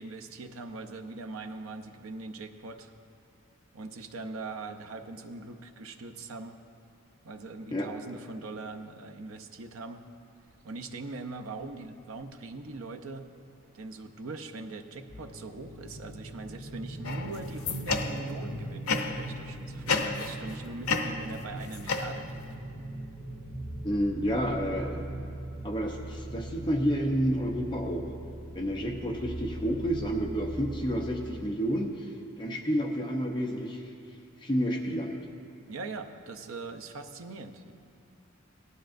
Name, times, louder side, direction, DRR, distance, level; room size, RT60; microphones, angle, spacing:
voice 1, 0.0-2.9 3.7-6.6 7.2-10.0 10.6-13.3 13.7-22.4 35.7-37.7, right 3 dB, 75° right, 6 dB, 0.7 m, -41 dB
sound 1, 10.5-10.7 11.6-11.7 12.1-12.2 12.5-12.8 13.2-29.6, right 2 dB, 40° right, 0.6 m, -43 dB
sound 2, 15.1-31.4, right 1 dB, 45° left, 3.2 m, -43 dB
sound 3, 17.0-18.4 18.9-19.3 19.9-20.5 20.8-22.5, left 4 dB, 85° left, 0.7 m, -32 dB
voice 2, 23.8-25.0 25.6-28.0 28.5-32.1 32.4-33.8 34.4-35.2, equal, 20° left, 1 dB, 0.7 m, -30 dB
18.0 x 11.5 x 2.6 m, 2.5 s
head